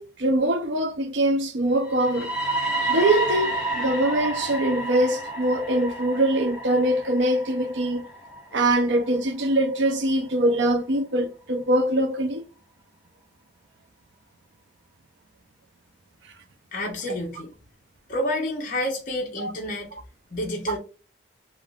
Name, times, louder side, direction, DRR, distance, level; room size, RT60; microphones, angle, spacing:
voice 1, 0.0-2.3 2.9-8.1 8.5-12.4 19.4-19.5, right 1 dB, 70° right, 0.6 m, -23 dB
sound 1, 1.8-9.7, right 1 dB, 5° right, 1.4 m, -30 dB
voice 2, 16.7-17.5 18.1-19.9 20.3-20.8, left 1 dB, 45° left, 0.9 m, -29 dB
3.4 x 2.5 x 2.3 m
head